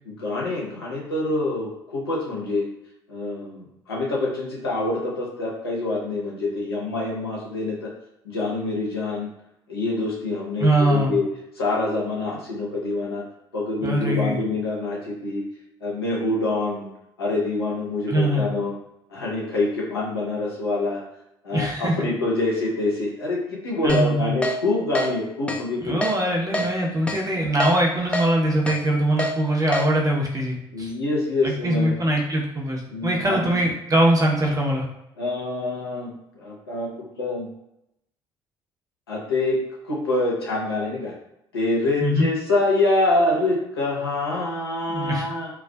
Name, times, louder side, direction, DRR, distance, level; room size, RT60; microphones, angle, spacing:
voice 1, 0.0-2.7 3.1-7.9 8.2-9.3 9.7-11.3 11.6-13.2 13.5-15.4 15.8-16.9 17.2-18.7 19.1-21.0 21.4-26.0 26.5-26.6 30.7-31.9 32.9-33.6 35.2-36.9 37.2-37.5 39.1-39.6 39.8-41.1 41.5-45.5, left 2 dB, 85° left, -4 dB, 0.6 m, -26 dB
voice 2, 10.6-11.2 13.8-14.4 18.1-18.5 21.5-22.1 23.8-24.3 25.8-30.9 31.4-34.9 42.0-42.3 44.9-45.3, right 1 dB, 30° right, -1 dB, 0.7 m, -22 dB
Keyboard (musical), 23.9-24.0 24.4-24.6 25.0-25.1 25.5-25.6 26.0-26.2 26.5-26.7 27.1-27.2 27.6-27.7 28.1-28.3 28.7-28.8 29.2-29.3 29.7-29.9, left 1 dB, 10° left, 0.4 m, -25 dB
2.4 x 2.3 x 2.2 m, 0.84 s
figure-of-eight pair, 50°, 13 cm